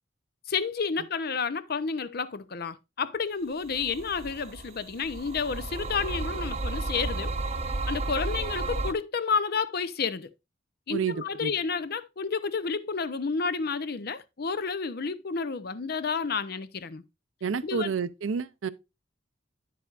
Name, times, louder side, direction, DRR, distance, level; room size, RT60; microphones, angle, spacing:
voice 1, 0.5-7.3 7.9-10.3 10.9-17.0 17.6-17.9, left 5 dB, 50° left, 0.6 m, -30 dB
sound 1, 3.7-8.9, right 2 dB, 35° right, 0.8 m, -33 dB
voice 2, 10.9-11.5 17.4-18.7, right 6 dB, 80° right, 0.5 m, -30 dB
9.3 x 7.6 x 2.4 m
head